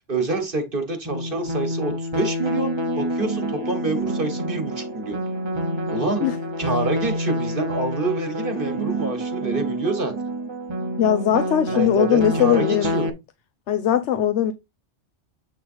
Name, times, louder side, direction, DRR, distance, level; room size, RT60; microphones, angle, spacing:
voice 1, 0.1-5.2 5.9-6.3 6.6-10.1 11.7-13.1, right 2 dB, 50° right, 1.6 m, -27 dB
sound 1, 1.0-13.1, equal, 25° right, 1.0 m, -28 dB
voice 2, 11.0-12.9 13.7-14.5, left 10 dB, 75° left, 0.9 m, -20 dB
8.5 x 3.9 x 4.2 m
omnidirectional pair, 1.2 m